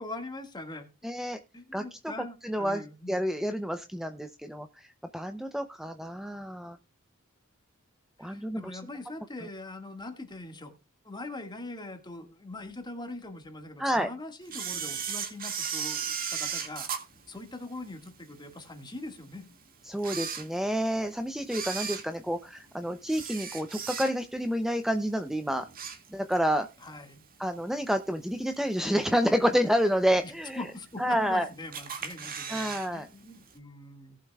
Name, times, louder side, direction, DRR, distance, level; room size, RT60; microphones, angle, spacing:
voice 1, 0.0-0.9 1.5-3.5 8.2-10.7 11.0-16.9 17.3-19.4 26.8-27.2 30.2-34.2, left 2 dB, 20° left, 5 dB, 1.8 m, -42 dB
voice 2, 1.0-1.4 1.7-2.0 2.4-6.8 8.2-8.8 13.8-14.1 19.8-25.7 26.1-26.7 27.4-30.7 31.0-31.5 32.5-33.1, equal, ahead, 7 dB, 0.5 m, -29 dB
Camera, 14.5-18.1 18.6-18.7 19.4-19.5 19.9-21.0 21.4-24.4 24.8-25.1 25.4-26.5 26.8-26.9 27.9-28.0 28.5-28.9 29.4-29.5 29.7-29.8 29.9-30.0 30.8-31.3 31.7-32.9 33.1-33.2 33.5-33.6, right 7 dB, 45° right, 2.0 m, -36 dB
18.5 x 7.3 x 2.3 m, 0.29 s
head